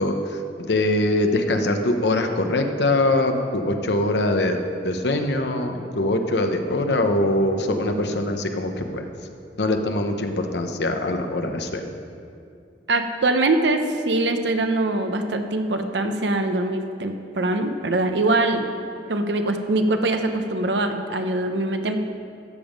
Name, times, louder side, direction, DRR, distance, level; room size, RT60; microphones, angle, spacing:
voice 1, 0.0-4.6 4.8-9.1 9.6-11.9, left 1 dB, 70° left, 6 dB, 0.9 m, -23 dB
voice 2, 12.9-18.7 19.1-22.0, right 2 dB, 80° right, 6 dB, 0.8 m, -23 dB
13.0 x 7.2 x 5.2 m, 2.4 s
head